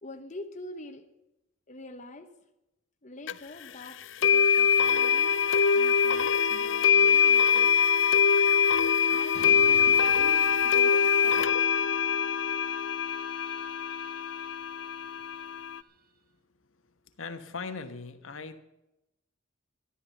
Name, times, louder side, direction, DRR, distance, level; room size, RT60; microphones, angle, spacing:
voice 1, 0.0-1.1 1.7-2.3 3.0-5.4 5.7-7.8 9.1-11.7, left 1 dB, 35° left, 5 dB, 1.0 m, -45 dB
sound 1, 3.3-3.4 4.2-15.8, left 7 dB, 65° left, 0.5 m, -23 dB
sound 2, 9.3-11.3 11.6-15.9, right 3 dB, 45° right, 1.2 m, -51 dB
voice 2, 17.2-18.6, left 4 dB, 80° left, 7 dB, 1.3 m, -39 dB
13.0 x 12.5 x 6.7 m, 0.92 s
head